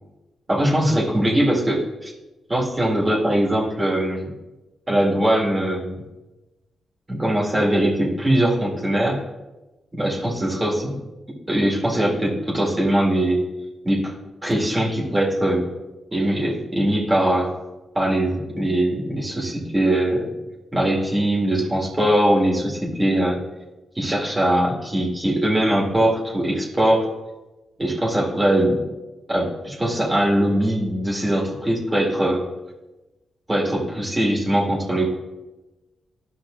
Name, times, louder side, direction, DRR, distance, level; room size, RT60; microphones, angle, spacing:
voice 1, 0.5-2.1 2.5-4.3 4.9-6.0 7.1-9.2 10.0-10.9 11.5-13.4 13.8-14.1 14.4-15.7 16.1-17.5 17.9-20.3 20.7-23.4 24.0-27.1 27.8-28.8 29.3-32.5 33.5-35.0, right 1 dB, 20° right, -4 dB, 2.1 m, -21 dB
12.5 x 5.7 x 2.6 m, 1.1 s
cardioid pair, 60°, 0 cm